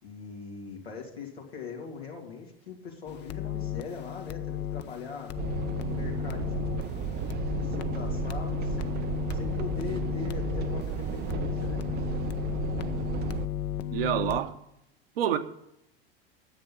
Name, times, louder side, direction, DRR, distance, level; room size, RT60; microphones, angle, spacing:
voice 1, 0.0-5.3 5.9-7.0 7.6-9.0 9.3-12.0, left 5 dB, 90° left, 2.9 m, -41 dB
sound 1, 3.1-14.4, left 12 dB, 35° left, 0.7 m, -34 dB
sound 2, 5.4-13.5, right 11 dB, 35° right, 0.5 m, -34 dB
voice 2, 13.9-14.5 15.2-15.4, right 10 dB, 70° right, 1.2 m, -27 dB
10.5 x 7.7 x 7.1 m
hypercardioid pair, 85°, 30 cm